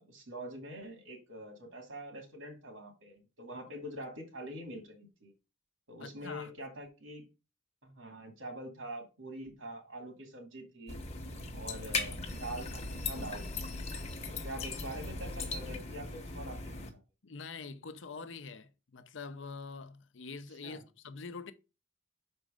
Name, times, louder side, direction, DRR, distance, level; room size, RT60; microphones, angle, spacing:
voice 1, 0.0-5.3 5.9-7.2 7.8-11.0 11.5-13.4 14.3-16.9 20.6-20.8, right 1 dB, 80° right, 2.4 m, -45 dB
voice 2, 6.0-6.5 17.2-21.5, left 4 dB, 70° left, 0.6 m, -45 dB
sound 1, 10.9-16.9, left 3 dB, 35° left, 1.0 m, -38 dB
6.2 x 4.5 x 5.0 m
head